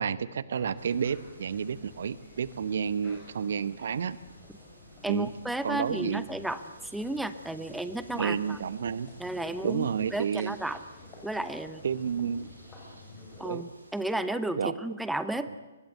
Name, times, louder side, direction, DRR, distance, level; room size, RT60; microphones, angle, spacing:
voice 1, 0.0-4.2 5.1-5.3 5.6-6.3 8.1-9.1 9.6-10.6 11.8-12.5 13.4-13.6 14.6-14.7, right 7 dB, 55° right, 17 dB, 1.1 m, -30 dB
sound 1, 0.6-13.4, left 2 dB, 20° left, 7.0 m, -51 dB
sound 2, 0.8-14.1, right 1 dB, 80° right, 7.2 m, -58 dB
voice 2, 5.0-8.6 9.2-10.8 11.2-11.8 13.4-15.5, right 1 dB, ahead, 11 dB, 0.9 m, -33 dB
24.0 x 21.0 x 8.2 m, 1.2 s
figure-of-eight pair, 125°, 0 cm